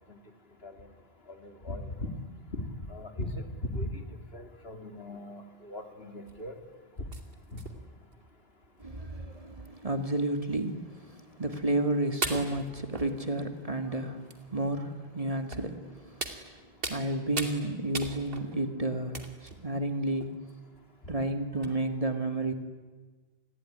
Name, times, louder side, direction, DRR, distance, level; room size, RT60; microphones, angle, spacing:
voice 1, 1.4-2.1 2.5-2.6 2.9-3.3 3.7-4.0 4.3-6.6 7.5-7.6, left 1 dB, 65° left, 7 dB, 2.9 m, -38 dB
sound 1, 6.3-6.5 7.1-8.1 8.9-9.0 9.2-9.3 10.4-10.5 11.4-11.6 12.2-13.6 14.3-14.4 15.5-15.8 16.2-17.1 17.4-17.6 17.9-18.6 19.1-19.6 20.2-20.5 21.2-21.3 21.6-21.7, right 2 dB, 55° right, 2.8 m, -38 dB
voice 2, 8.8-16.2 16.9-20.3 21.1-22.5, right 2 dB, 35° right, 8 dB, 2.1 m, -31 dB
28.5 x 21.0 x 10.0 m, 1.4 s
omnidirectional pair, 1.1 m